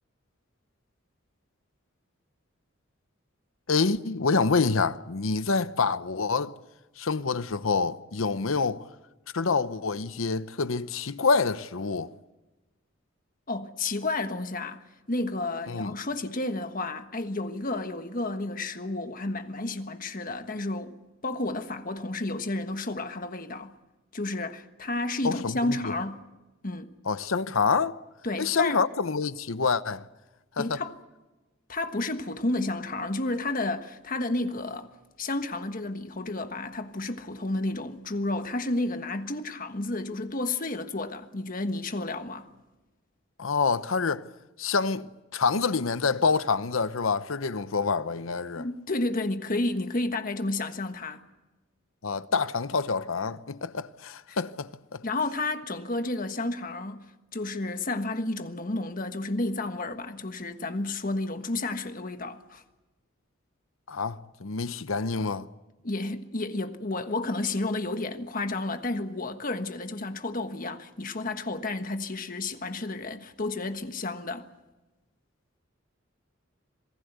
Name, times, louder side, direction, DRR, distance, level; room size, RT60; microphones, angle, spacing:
voice 1, 3.7-6.5 7.0-8.8 9.3-12.1 15.7-15.9 25.2-25.9 27.1-27.9 28.4-30.1 30.6-30.8 43.4-44.2 44.6-48.6 52.0-55.0 63.9-65.5, left 4 dB, 85° left, 0.8 m, -27 dB
voice 2, 13.5-23.7 24.1-26.2 26.6-26.9 28.2-28.8 30.6-30.9 31.7-34.9 35.2-42.5 48.5-51.2 54.3-54.4 55.0-57.1 57.3-62.6 65.8-74.5, left 2 dB, 45° left, 1.4 m, -31 dB
27.0 x 19.0 x 8.1 m
head